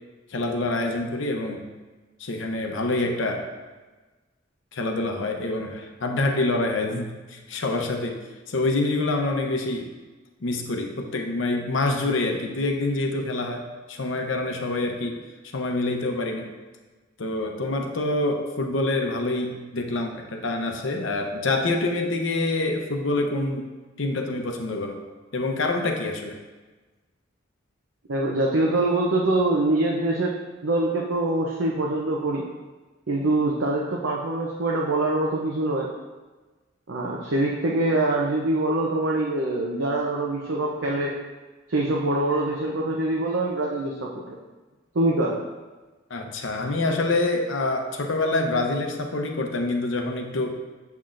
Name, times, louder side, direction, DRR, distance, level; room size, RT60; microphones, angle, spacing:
voice 1, 0.3-1.7 2.2-3.5 4.7-8.2 8.5-9.9 10.4-15.2 15.5-16.5 17.2-23.7 24.0-25.0 25.3-26.3 46.1-50.5, left 2 dB, 75° left, 3 dB, 0.8 m, -26 dB
voice 2, 28.1-30.3 30.6-32.4 33.1-35.9 36.9-41.2 41.7-44.4 44.9-45.4, right 2 dB, 75° right, -2 dB, 0.7 m, -24 dB
7.4 x 5.8 x 2.5 m, 1.3 s
head